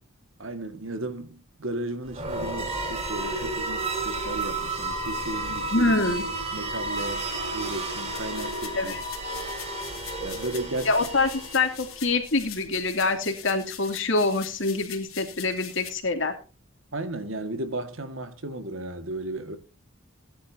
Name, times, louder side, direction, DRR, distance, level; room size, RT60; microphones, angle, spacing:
voice 1, 0.4-5.9 6.5-8.9 10.2-11.0 16.9-19.6, right 2 dB, 65° right, 1.9 m, -34 dB
sound 1, 2.1-12.0, right 2 dB, 30° right, 4.8 m, -32 dB
voice 2, 5.7-6.3 8.7-9.0 10.8-16.3, left 3 dB, 60° left, 2.9 m, -25 dB
sound 2, 8.1-15.9, left 11 dB, 85° left, 3.1 m, -43 dB
18.0 x 11.5 x 2.8 m
head